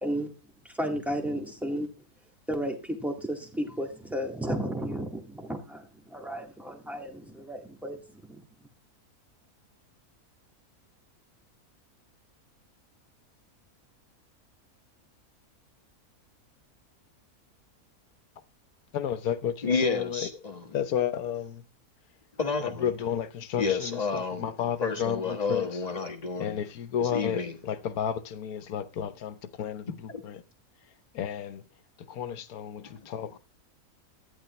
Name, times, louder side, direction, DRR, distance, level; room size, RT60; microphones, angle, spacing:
voice 1, 0.0-0.3 0.6-1.9 2.5-8.4, equal, ahead, 1.8 m, -33 dB
voice 2, 18.9-20.3 20.7-21.6 22.6-25.7 26.4-30.4 31.1-31.7 32.0-33.4, left 9 dB, 75° left, 1.4 m, -32 dB
voice 3, 19.6-20.7 22.4-22.9 23.6-24.5 24.8-26.6 27.0-27.5 30.1-30.2 32.8-33.0, left 4 dB, 25° left, 1.6 m, -30 dB
14.0 x 11.5 x 3.2 m
omnidirectional pair, 1.6 m